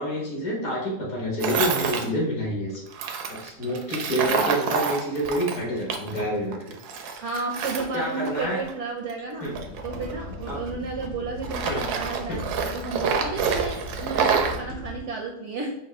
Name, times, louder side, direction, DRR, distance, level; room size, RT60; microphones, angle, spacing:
voice 1, 0.0-2.8 3.3-6.8 7.1-7.2 7.9-8.6 9.4-9.5 10.5-10.6 11.6-11.8 12.3-12.4, equal, 65° left, -4 dB, 1.9 m, -28 dB
Tools, 1.4-2.1 2.9-6.2 6.5-8.8 9.4-11.1 11.4-14.6, right 6 dB, 85° right, 1.1 m, -28 dB
voice 2, 4.2-4.8 7.2-9.5 9.8-15.8, right 4 dB, 65° right, 1 dB, 0.7 m, -33 dB
sound 1, 9.4-15.0, left 1 dB, 40° left, 1.0 m, -38 dB
5.3 x 2.2 x 3.5 m, 0.79 s
omnidirectional pair, 1.6 m